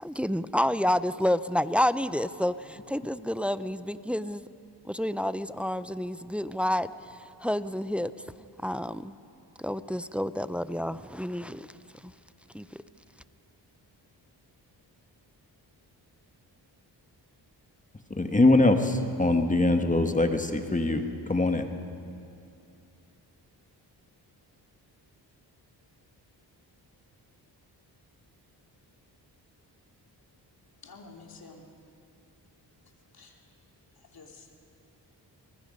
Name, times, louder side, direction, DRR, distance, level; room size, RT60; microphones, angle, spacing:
voice 1, 0.0-4.4 4.8-8.1 8.6-9.1 9.6-11.7 12.0-12.1 12.5-12.8, left 1 dB, 5° right, 14 dB, 0.4 m, -29 dB
voice 2, 18.1-21.6, left 2 dB, 20° left, 6 dB, 1.5 m, -23 dB
voice 3, 30.8-31.6 33.1-33.4 34.1-34.6, left 4 dB, 55° left, 1 dB, 2.9 m, -49 dB
25.0 x 20.5 x 5.4 m, 2.6 s
cardioid pair, 80°, 42 cm